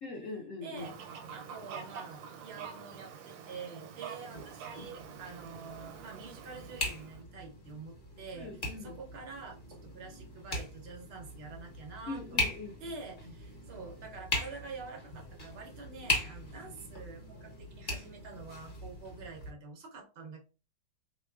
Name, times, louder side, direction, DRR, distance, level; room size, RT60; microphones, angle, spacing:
voice 1, 0.0-0.9 8.3-9.0 12.1-12.7, left 3 dB, 70° left, 0 dB, 0.7 m, -41 dB
voice 2, 0.6-8.5 8.8-12.5 12.8-20.4, right 4 dB, 65° right, 1 dB, 0.6 m, -47 dB
Fowl, 0.8-7.2, right 7 dB, 85° right, 1.3 m, -46 dB
sound 1, 4.3-19.5, left 2 dB, 35° left, 0.9 m, -40 dB
3.7 x 2.9 x 2.3 m, 0.33 s
omnidirectional pair, 2.0 m